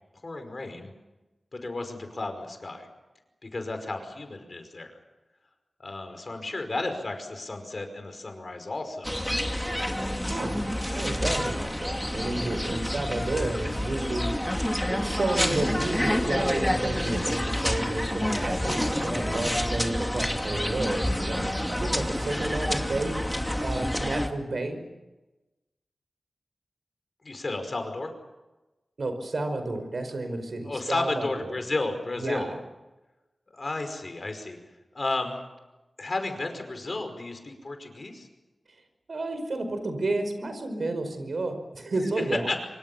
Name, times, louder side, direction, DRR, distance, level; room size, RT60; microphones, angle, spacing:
voice 1, 0.2-0.9 1.5-2.9 3.4-5.0 5.8-9.2 27.2-28.1 30.6-32.5 33.5-34.6 34.9-35.4 36.0-38.3 42.5-42.6, left 2 dB, 50° left, 7 dB, 5.2 m, -33 dB
sound 1, 9.0-24.3, equal, 5° left, 2.6 m, -28 dB
voice 2, 10.2-10.7 10.9-14.3 14.9-24.8 29.0-31.6 32.2-32.6 39.1-42.6, right 2 dB, 70° right, 7 dB, 5.1 m, -31 dB
26.0 x 24.5 x 7.1 m, 1.1 s
wide cardioid pair, 65°, 0 cm